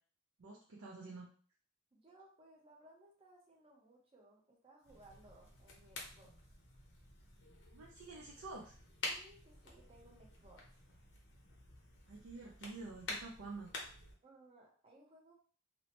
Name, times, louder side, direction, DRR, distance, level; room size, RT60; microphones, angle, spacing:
voice 1, 0.4-1.3 7.7-8.7 12.1-13.7, right 3 dB, 75° right, -4 dB, 0.5 m, -49 dB
voice 2, 1.9-6.6 9.1-10.8 14.2-15.4, right 1 dB, 25° right, -2 dB, 0.6 m, -63 dB
sound 1, 4.8-14.1, left 2 dB, 60° left, 0.7 m, -49 dB
2.8 x 2.0 x 2.8 m, 0.44 s
head